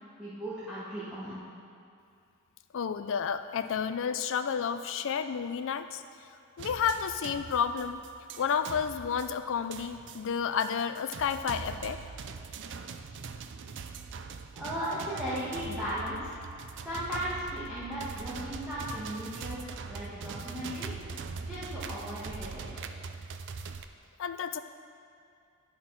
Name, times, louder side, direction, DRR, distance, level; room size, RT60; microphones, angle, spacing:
voice 1, 0.2-1.4 14.5-16.3 16.8-20.9 21.4-22.7, equal, 5° right, -12 dB, 1.6 m, -36 dB
voice 2, 2.7-6.0 6.6-8.0 8.4-12.0 24.2-24.6, left 7 dB, 65° left, 10 dB, 0.4 m, -31 dB
sound 1, 6.6-23.8, right 5 dB, 60° right, 0.4 m, -42 dB
11.0 x 4.4 x 5.8 m, 2.5 s
head